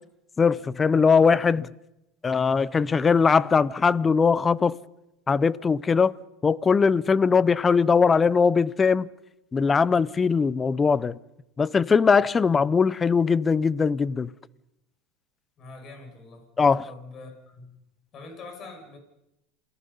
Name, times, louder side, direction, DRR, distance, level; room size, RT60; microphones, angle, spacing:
voice 1, 0.4-1.7 2.2-4.7 5.3-6.1 6.4-9.1 9.5-11.2 11.6-14.3 16.6-16.8, left 5 dB, 20° left, 0.7 m, -20 dB
voice 2, 15.6-16.4 16.8-17.8 18.1-19.0, left 3 dB, 40° left, 6.2 m, -43 dB
28.5 x 18.5 x 5.5 m
supercardioid pair, 110°, 0 cm